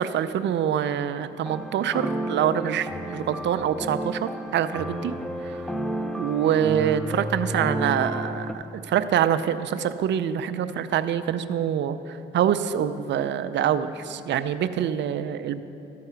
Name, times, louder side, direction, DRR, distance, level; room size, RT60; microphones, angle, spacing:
voice 1, 0.0-5.1 5.4-5.6 6.2-15.6, right 9 dB, 65° right, 11 dB, 0.5 m, -25 dB
sound 1, 1.4-8.5, equal, 5° left, 0.6 m, -31 dB
13.5 x 4.7 x 5.6 m, 2.9 s
supercardioid pair, 65°, 20 cm